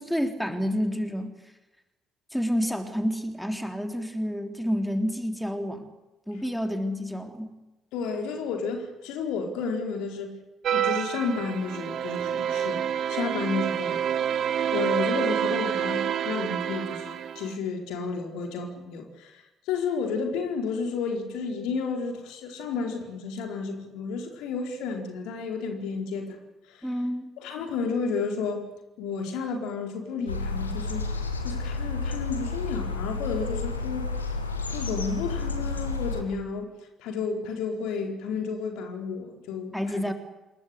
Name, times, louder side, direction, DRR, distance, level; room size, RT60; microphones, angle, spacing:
voice 1, 0.0-1.3 2.3-5.9 6.3-7.5 26.8-27.3 39.7-40.1, equal, ahead, 6 dB, 3.7 m, -29 dB
voice 2, 7.9-10.4 10.7-14.0 14.7-26.4 26.7-26.9 27.4-28.7 29.0-31.1 31.4-34.2 34.7-36.7 37.0-40.0, left 5 dB, 60° left, 3 dB, 4.5 m, -32 dB
sound 1, 10.6-17.6, right 9 dB, 50° right, 1.6 m, -28 dB
sound 2, 30.3-36.2, left 3 dB, 85° left, 2.5 m, -31 dB
27.5 x 22.5 x 8.3 m, 1.0 s
figure-of-eight pair, 45°, 0 cm